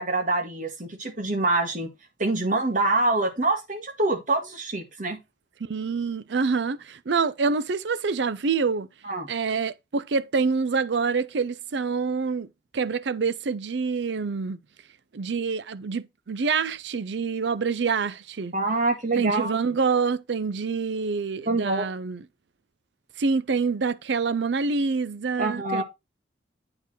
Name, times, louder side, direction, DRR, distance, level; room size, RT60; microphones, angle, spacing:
voice 1, 0.0-1.9 2.2-5.2 9.0-9.3 18.5-19.6 21.5-21.9 25.4-25.8, right 2 dB, 45° right, 1.8 m, -25 dB
voice 2, 5.6-8.9 9.3-12.5 12.7-14.6 15.1-18.5 19.1-22.2 23.2-25.8, right 5 dB, 75° right, 0.5 m, -26 dB
8.6 x 4.5 x 4.3 m
head